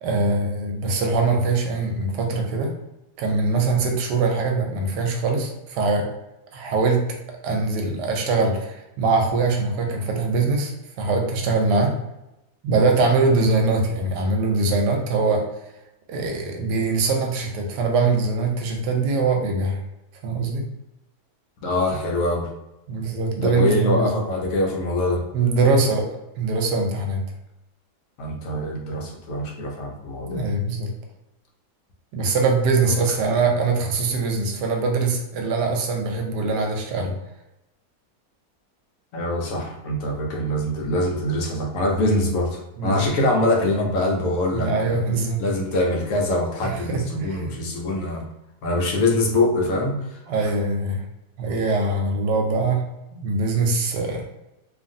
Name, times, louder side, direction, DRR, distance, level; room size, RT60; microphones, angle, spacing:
voice 1, 0.0-2.7 3.2-6.0 6.5-7.0 7.4-10.7 11.0-12.0 12.6-15.4 16.1-19.8 20.2-20.6 22.9-24.1 25.3-26.1 26.4-27.2 30.3-30.9 32.1-37.2 42.8-43.0 44.5-45.4 46.6-47.5 50.3-51.0 51.4-52.8 53.1-54.2, right 3 dB, 85° right, 2 dB, 1.2 m, -22 dB
voice 2, 21.6-22.5 23.4-25.2 28.2-30.5 32.9-33.0 39.1-45.0 45.4-48.3 48.6-50.0 50.4-50.5, left 1 dB, 65° left, -1 dB, 1.0 m, -24 dB
2.8 x 2.5 x 2.6 m, 0.92 s
omnidirectional pair, 1.7 m